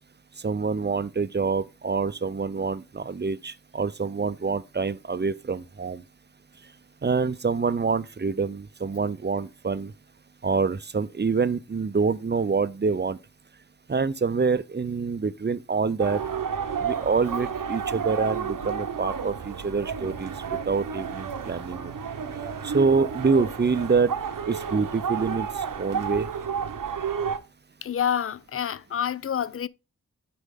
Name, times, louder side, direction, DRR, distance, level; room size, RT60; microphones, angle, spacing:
voice 1, 0.4-6.0 7.0-9.9 10.4-13.2 13.9-16.2 16.8-21.9 22.6-24.1 24.5-26.3, right 4 dB, 35° right, 0.6 m, -26 dB
sound 1, 16.0-27.4, right 7 dB, 85° right, 0.9 m, -31 dB
voice 2, 27.8-29.7, left 9 dB, 45° left, 0.5 m, -28 dB
8.2 x 5.1 x 3.7 m
cardioid pair, 50°, 32 cm